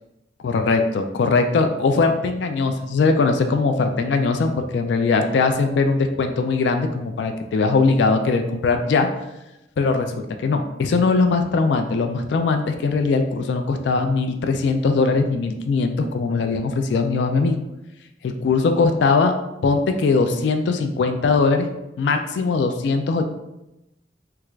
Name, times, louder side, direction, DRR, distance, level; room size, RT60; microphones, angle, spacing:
voice 1, 0.4-9.1 9.8-17.6 18.2-19.3 19.6-21.7 22.0-23.2, left 4 dB, 75° left, 6 dB, 0.3 m, -20 dB
3.4 x 2.4 x 3.1 m, 0.92 s
head